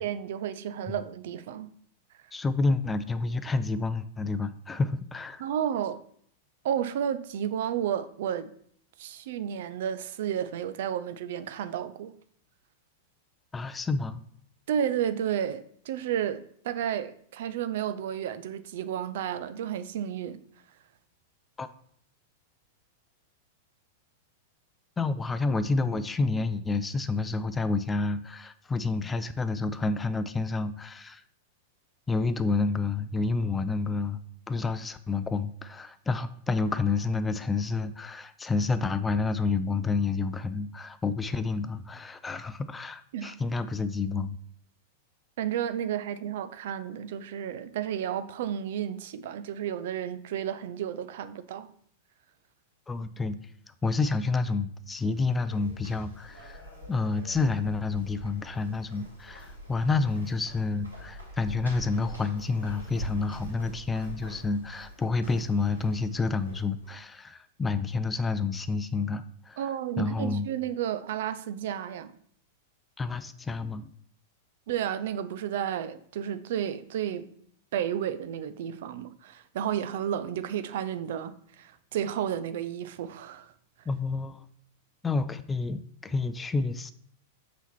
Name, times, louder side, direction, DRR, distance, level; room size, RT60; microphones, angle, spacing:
voice 1, 0.0-1.7 5.4-6.0 6.6-8.5 9.0-12.1 14.7-20.4 43.1-43.3 45.4-51.7 69.6-72.1 74.7-77.3 77.7-83.5, right 9 dB, 55° right, 0.5 m, -32 dB
voice 2, 2.3-5.4 13.5-14.2 21.6-21.7 25.0-31.2 32.1-34.2 34.5-44.4 52.9-53.4 53.8-56.6 56.9-69.6 70.0-70.5 73.0-73.9 83.9-84.4 85.0-86.9, left 3 dB, 15° left, 0.5 m, -29 dB
sound 1, 54.8-67.0, equal, 90° right, 2.7 m, -45 dB
5.6 x 4.3 x 6.0 m
figure-of-eight pair, 95°, 0 cm